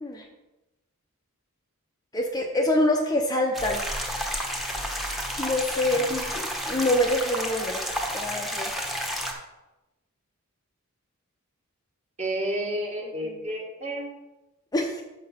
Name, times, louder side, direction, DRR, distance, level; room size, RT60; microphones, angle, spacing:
voice 1, 2.1-3.8 5.4-7.8 8.1-8.7 13.0-13.1 14.7-15.0, left 1 dB, 15° left, 2 dB, 0.6 m, -25 dB
sound 1, 3.5-9.3, equal, ahead, 1.0 m, -31 dB
voice 2, 12.2-14.1, right 1 dB, 30° right, 0 dB, 1.7 m, -31 dB
6.4 x 5.7 x 5.6 m, 1.0 s
head